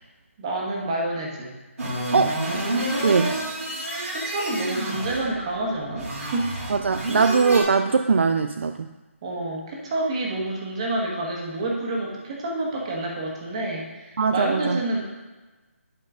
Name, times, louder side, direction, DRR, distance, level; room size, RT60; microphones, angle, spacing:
voice 1, 0.4-1.5 4.1-6.5 9.2-15.1, right 2 dB, 25° right, -2 dB, 1.5 m, -28 dB
sound 1, 1.8-7.6, right 1 dB, 80° right, 2.8 m, -29 dB
voice 2, 3.0-3.3 6.7-8.9 14.2-14.8, right 5 dB, 60° right, 8 dB, 0.4 m, -21 dB
11.5 x 4.4 x 3.7 m, 1.2 s
hypercardioid pair, 170°, 7 cm